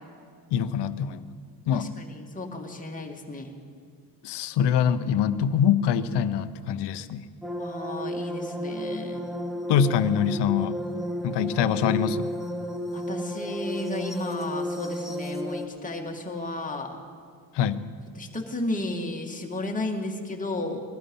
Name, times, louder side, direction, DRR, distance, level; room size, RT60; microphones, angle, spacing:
voice 1, 0.5-1.2 1.7-1.9 4.2-7.2 9.7-10.8 11.2-12.3 17.5-17.8, left 8 dB, 85° left, 13 dB, 0.8 m, -24 dB
voice 2, 1.7-3.5 7.6-9.3 12.9-17.0 18.2-20.8, left 2 dB, 20° left, 1 dB, 2.1 m, -33 dB
sound 1, 7.4-15.7, equal, ahead, 1.3 m, -32 dB
20.0 x 13.0 x 5.4 m, 2.2 s
cardioid pair, 105°, 40 cm